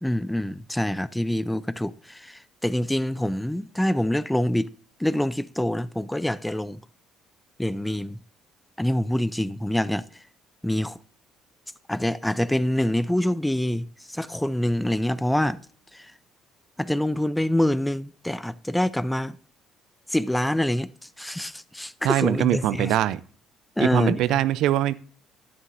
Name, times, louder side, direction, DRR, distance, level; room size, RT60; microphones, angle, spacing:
voice 1, 0.0-4.7 5.0-6.8 7.6-8.2 8.8-10.0 10.6-11.0 11.9-15.6 15.9-16.1 16.8-19.4 20.1-20.9 21.2-22.9 23.8-24.2, left 1 dB, 5° left, 0.4 m, -25 dB
voice 2, 22.0-23.2 23.8-24.9, right 13 dB, 70° right, 0.4 m, -22 dB
11.0 x 9.7 x 2.6 m
cardioid pair, 115°, 0 cm